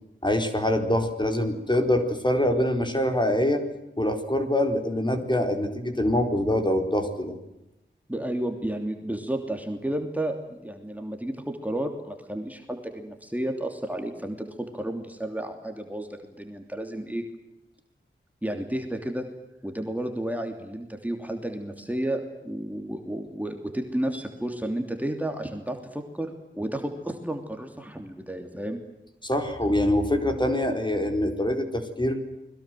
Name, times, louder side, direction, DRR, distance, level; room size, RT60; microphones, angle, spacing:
voice 1, 0.2-3.6 4.0-7.4 29.2-32.2, left 1 dB, 25° left, 5 dB, 4.4 m, -24 dB
voice 2, 8.1-17.2 18.4-19.2 19.6-28.8, right 1 dB, 10° right, 4 dB, 3.1 m, -32 dB
29.5 x 22.0 x 7.8 m, 0.92 s
wide cardioid pair, 60°, 20 cm